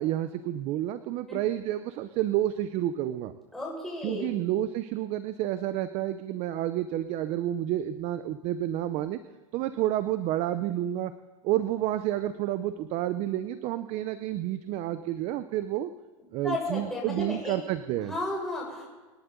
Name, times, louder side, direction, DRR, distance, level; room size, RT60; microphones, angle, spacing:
voice 1, 0.0-3.3 4.0-9.2 9.5-11.1 11.4-15.9 16.3-18.1, right 13 dB, 35° right, 11 dB, 0.7 m, -30 dB
voice 2, 3.5-4.3 16.4-17.6 18.0-19.0, left 2 dB, ahead, -4 dB, 6.4 m, -33 dB
26.5 x 11.0 x 3.9 m, 1.3 s
supercardioid pair, 150°, 18 cm